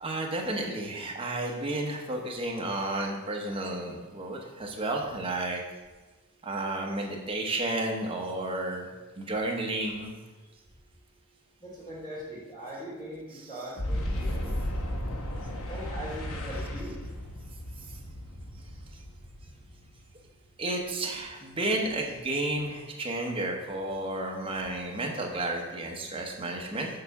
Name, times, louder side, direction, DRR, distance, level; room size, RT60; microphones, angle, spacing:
voice 1, 0.0-5.6 6.4-8.9 9.2-10.1 13.3-13.5 20.6-26.9, right 2 dB, 25° right, 0 dB, 1.0 m, -32 dB
voice 2, 11.6-14.6 15.7-17.0, equal, 20° left, -12 dB, 2.6 m, -40 dB
Boom, 13.8-20.3, equal, 75° left, 1.0 m, -35 dB
6.7 x 4.0 x 5.9 m, 1.2 s
head